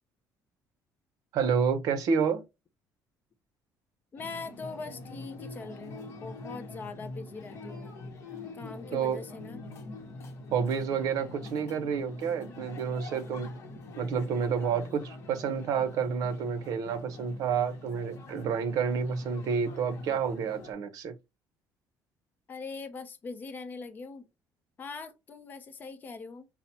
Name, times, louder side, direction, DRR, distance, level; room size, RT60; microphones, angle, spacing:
voice 1, 1.3-2.4 8.9-9.2 10.5-13.5 14.0-21.1, right 6 dB, 55° right, 0.6 m, -29 dB
voice 2, 4.1-8.1 8.5-9.6 22.5-24.2 24.8-26.5, left 4 dB, 25° left, 0.5 m, -42 dB
sound 1, 4.2-20.7, left 2 dB, 40° left, 0.8 m, -44 dB
5.5 x 2.0 x 2.8 m
cardioid pair, 170°, 7 cm